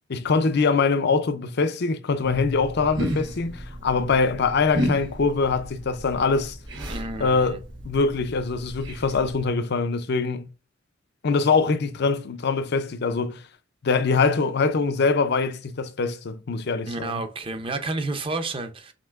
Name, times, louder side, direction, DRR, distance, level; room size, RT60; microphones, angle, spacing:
voice 1, 0.1-6.6 7.2-10.5 11.2-13.4 13.8-17.2, left 4 dB, 60° left, 0.5 m, -23 dB
sound 1, 2.2-9.5, equal, 70° right, 1.2 m, -33 dB
voice 2, 6.9-7.6 16.9-18.9, right 3 dB, 30° right, 0.6 m, -30 dB
5.3 x 3.2 x 2.4 m
head